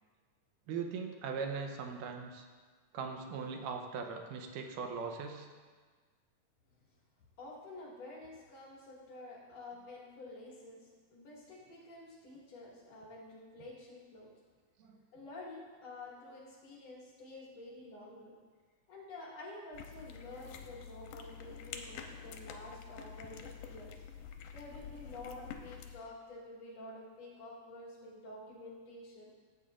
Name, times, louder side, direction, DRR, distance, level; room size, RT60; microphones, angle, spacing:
voice 1, 0.7-2.5 2.9-5.5 14.8-15.0, right 5 dB, 90° right, 4 dB, 2.4 m, -40 dB
voice 2, 7.4-14.3 15.1-18.3 18.9-24.0 24.5-29.3, left 2 dB, 55° left, -5 dB, 3.0 m, -49 dB
sound 1, 19.7-26.0, left 7 dB, 90° left, 2.2 m, -48 dB
14.5 x 8.2 x 2.5 m, 1.5 s
omnidirectional pair, 3.7 m